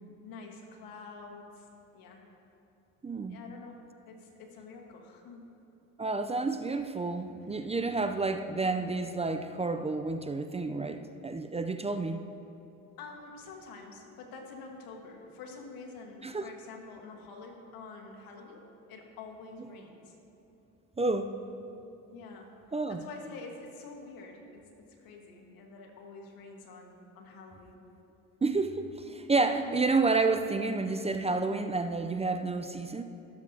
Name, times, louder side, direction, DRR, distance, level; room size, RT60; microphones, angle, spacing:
voice 1, 0.2-2.2 3.3-3.8 4.1-5.5 7.6-8.2 13.0-20.2 22.1-22.6 22.9-24.6 24.9-27.8 29.5-29.8, left 4 dB, 85° left, 1 dB, 1.6 m, -47 dB
voice 2, 3.0-3.4 6.0-12.2 16.2-16.5 21.0-21.3 22.7-23.0 28.4-33.0, right 3 dB, 20° right, 8 dB, 0.5 m, -30 dB
18.0 x 7.3 x 2.8 m, 2.8 s
supercardioid pair, 75°, 35 cm